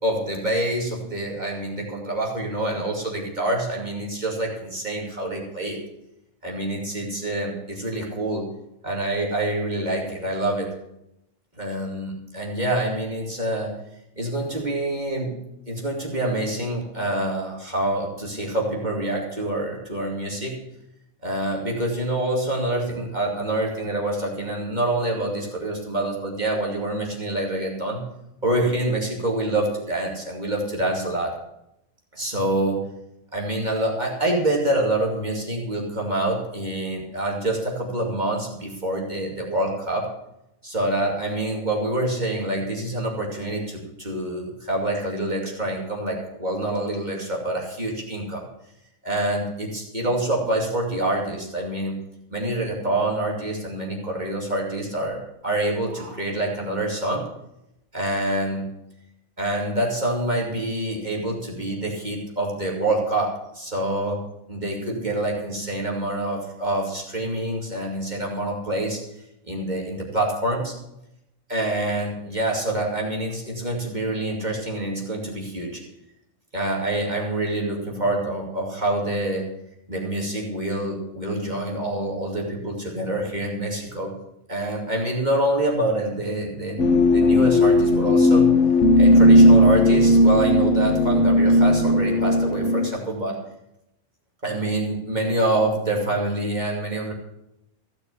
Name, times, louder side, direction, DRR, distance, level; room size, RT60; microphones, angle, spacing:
voice 1, 0.0-5.8 6.4-8.5 8.8-10.7 11.6-13.7 14.2-15.4 15.7-20.6 21.2-28.0 28.4-31.3 32.1-32.8 33.3-40.1 40.6-48.4 49.0-52.0 52.3-57.2 57.9-58.7 59.4-64.2 64.5-69.0 69.5-70.7 71.5-75.8 76.5-79.5 79.9-84.1 84.5-88.5 89.0-93.3 94.4-97.1, right 1 dB, 35° right, -2 dB, 2.7 m, -26 dB
sound 1, 86.8-92.9, left 1 dB, 65° left, 1.3 m, -16 dB
15.5 x 6.7 x 8.4 m, 0.83 s
omnidirectional pair, 1.4 m